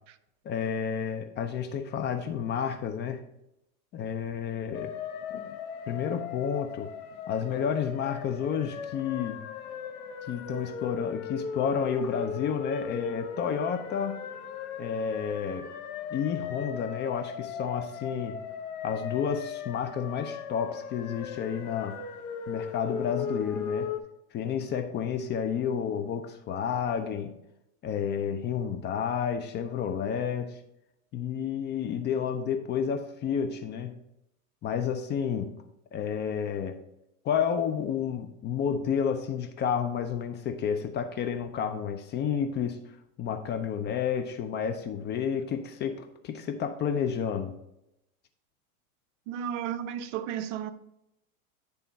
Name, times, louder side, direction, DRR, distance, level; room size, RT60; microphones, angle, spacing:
voice 1, 0.4-3.2 3.9-4.9 5.9-6.9 7.3-9.4 10.3-14.2 14.8-15.7 16.1-18.4 18.8-22.0 22.5-23.9 24.3-27.4 27.8-30.6 31.1-34.0 34.6-35.6 35.9-36.8 37.2-42.8 43.2-47.6, left 7 dB, 25° left, 0.5 m, -30 dB
sound 1, 4.7-24.0, left 6 dB, 75° left, 1.0 m, -38 dB
voice 2, 49.3-50.7, right 9 dB, 60° right, 0.7 m, -33 dB
10.0 x 3.4 x 4.0 m
hypercardioid pair, 110°, 43 cm